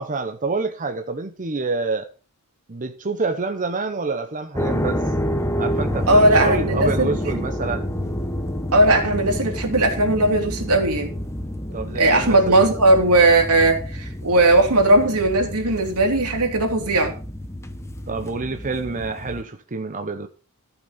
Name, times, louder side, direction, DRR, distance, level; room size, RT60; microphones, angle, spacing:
voice 1, 0.0-2.1 2.7-5.0 5.6-7.9 11.7-12.7 18.1-20.3, right 3 dB, 35° right, 0.9 m, -27 dB
sound 1, 4.5-19.4, equal, 10° left, 1.0 m, -28 dB
voice 2, 6.1-7.5 8.7-11.1 11.9-17.1, right 2 dB, 80° right, 3.1 m, -18 dB
14.0 x 6.0 x 5.7 m
head